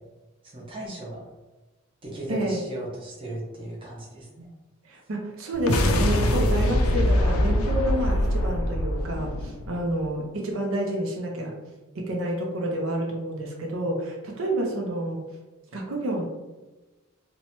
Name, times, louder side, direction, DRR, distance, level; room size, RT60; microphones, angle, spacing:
voice 1, 0.4-1.2 2.0-4.5, right 1 dB, 25° right, -4 dB, 0.7 m, -37 dB
voice 2, 2.3-2.6 4.8-11.6 11.9-15.2 15.7-16.2, right 1 dB, 70° right, 0 dB, 0.5 m, -29 dB
sound 1, 5.5-10.1, left 1 dB, 85° left, 0.4 m, -23 dB
3.0 x 2.1 x 2.9 m, 1.1 s
head